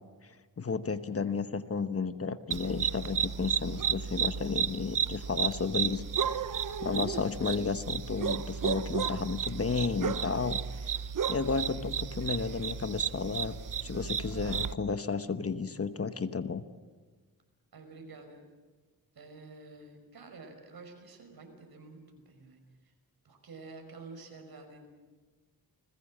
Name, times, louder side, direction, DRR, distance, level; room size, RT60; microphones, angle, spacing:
voice 1, 0.6-6.4 6.8-10.9 11.3-13.5 13.8-16.6, left 5 dB, 40° left, 11 dB, 1.1 m, -32 dB
sound 1, 2.5-14.7, right 7 dB, 55° right, 0.8 m, -33 dB
voice 2, 17.7-18.4 19.1-22.9 23.2-24.9, right 3 dB, 75° right, 4 dB, 5.3 m, -49 dB
30.0 x 20.5 x 7.5 m, 1.4 s
wide cardioid pair, 125°, 37 cm